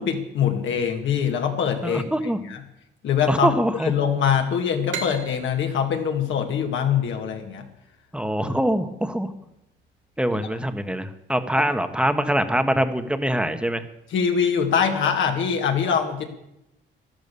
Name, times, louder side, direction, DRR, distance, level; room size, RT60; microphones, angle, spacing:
voice 1, 0.0-2.0 2.4-2.6 3.0-3.5 3.8-7.6 11.6-11.7 14.1-16.2, left 7 dB, 75° left, 4 dB, 2.2 m, -23 dB
voice 2, 1.8-2.4 3.3-3.9 8.1-9.3 10.2-13.8, equal, 5° right, 9 dB, 1.3 m, -23 dB
sound 1, 4.9-8.3, right 6 dB, 75° right, 2.1 m, -37 dB
12.5 x 12.5 x 7.0 m, 0.85 s
cardioid pair, 90°, 20 cm